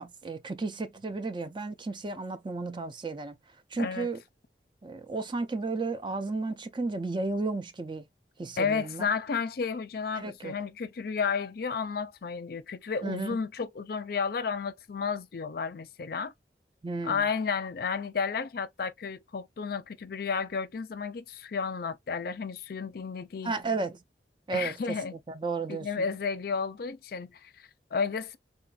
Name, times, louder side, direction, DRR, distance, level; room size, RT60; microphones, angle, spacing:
voice 1, 0.0-3.4 3.7-4.2 4.8-8.1 8.4-9.1 10.2-10.5 13.0-13.4 16.8-17.2 23.4-24.0 24.5-26.1, right 3 dB, 25° right, 0.4 m, -33 dB
voice 2, 3.8-4.1 8.6-16.3 17.0-23.5 24.5-25.2 25.7-28.4, left 5 dB, 55° left, 0.5 m, -32 dB
3.7 x 2.5 x 2.3 m
head